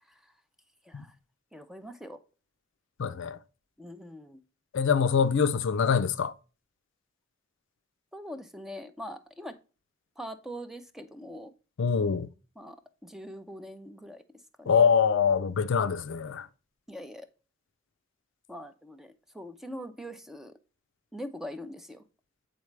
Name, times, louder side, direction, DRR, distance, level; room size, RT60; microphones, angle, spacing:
voice 1, 1.5-2.2 3.8-4.4 8.1-9.5 10.2-11.5 12.6-12.8 13.0-14.2 14.6-14.9 16.9-17.3 18.5-20.5 21.1-22.0, equal, ahead, 0.5 m, -42 dB
voice 2, 3.0-3.4 4.7-6.3 11.8-12.3 14.7-16.5, left 6 dB, 65° left, 0.4 m, -24 dB
8.3 x 4.0 x 3.2 m
head